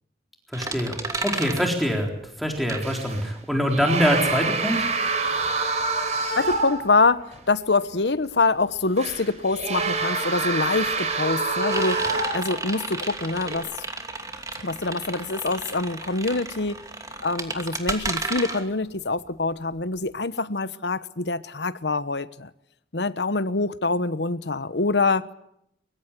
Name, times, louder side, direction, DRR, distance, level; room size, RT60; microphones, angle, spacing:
voice 1, 0.5-2.1 2.4-4.8, equal, ahead, 4.0 m, -24 dB
sound 1, 0.5-3.4 3.7-20.1, right 3 dB, 20° right, 2.7 m, -34 dB
sound 2, 2.8-3.3 3.7-6.9 7.3-7.4 9.0-12.7 13.3-13.6, right 3 dB, 40° right, 5.5 m, -26 dB
voice 2, 6.3-13.7 14.6-16.8 17.2-22.5 22.9-25.3, left 3 dB, 75° left, 1.1 m, -25 dB
24.0 x 23.5 x 8.4 m
head